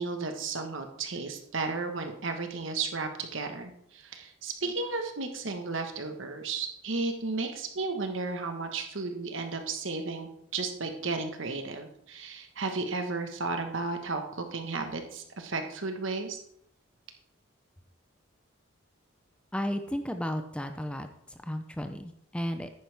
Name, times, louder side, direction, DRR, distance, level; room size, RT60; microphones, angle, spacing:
voice 1, 0.0-16.4, right 3 dB, 70° right, 5 dB, 1.3 m, -34 dB
voice 2, 19.5-21.1 21.4-22.7, equal, 5° left, 7 dB, 0.5 m, -33 dB
10.0 x 9.6 x 3.5 m, 0.73 s
head